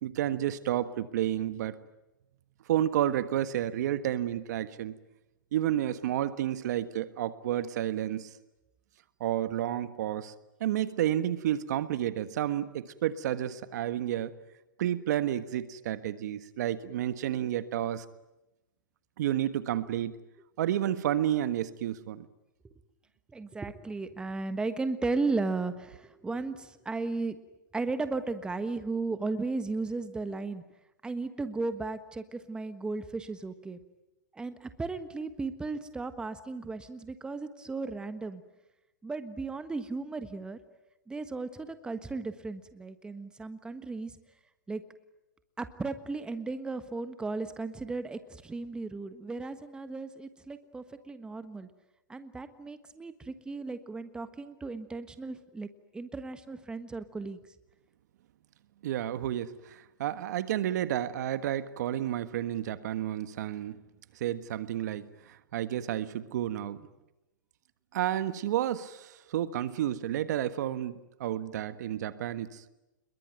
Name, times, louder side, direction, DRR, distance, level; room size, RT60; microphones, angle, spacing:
voice 1, 0.0-1.7 2.7-5.0 5.5-8.3 9.2-10.3 10.6-14.3 14.8-18.0 19.2-20.1 20.6-22.3 58.8-63.8 64.2-66.8 67.9-72.6, right 11 dB, 60° right, 12 dB, 1.5 m, -31 dB
voice 2, 23.3-27.4 27.7-30.6 31.0-33.8 34.3-38.4 39.0-40.6 41.1-44.2 44.7-44.8 45.6-51.7 52.1-55.7 55.9-57.4, right 3 dB, 10° right, 10 dB, 1.4 m, -35 dB
27.0 x 22.0 x 9.2 m, 0.94 s
hypercardioid pair, 130°, 10 cm